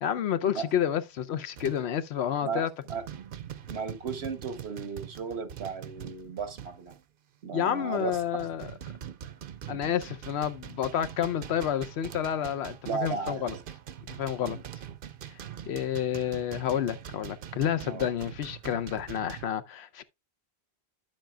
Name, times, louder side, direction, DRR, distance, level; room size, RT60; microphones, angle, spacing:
voice 1, 0.0-2.7 7.5-8.7 9.7-13.5 14.2-14.6 15.7-20.0, left 9 dB, 85° left, 0.9 m, -29 dB
sound 1, 0.6-0.8 1.6-2.0 2.4-2.6 2.9-7.0 7.6-19.5, right 9 dB, 60° right, 0.8 m, -43 dB
voice 2, 3.7-7.0 7.4-8.2 12.8-13.6 14.4-14.6 17.9-18.1, right 5 dB, 90° right, 1.4 m, -35 dB
10.0 x 7.5 x 2.2 m
omnidirectional pair, 1.1 m